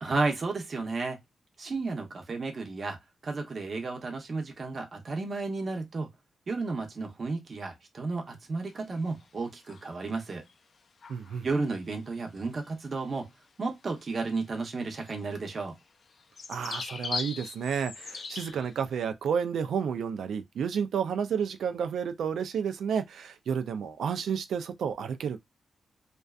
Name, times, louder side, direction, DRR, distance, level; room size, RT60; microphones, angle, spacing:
voice 1, 0.0-1.2 1.6-3.0 3.2-6.1 6.5-10.4 11.4-13.3 13.6-15.8, right 3 dB, 40° right, 0.7 m, -33 dB
sound 1, 8.7-9.3 9.6-10.2 10.5-10.6 11.0-11.4 12.5-12.7 13.0-13.1 13.9-14.0 14.3-14.4 14.9-18.7, left 5 dB, 50° left, 0.3 m, -40 dB
voice 2, 11.1-11.5 16.5-25.4, right 7 dB, 85° right, 0.3 m, -31 dB
2.5 x 2.3 x 2.3 m
wide cardioid pair, 120°, 0 cm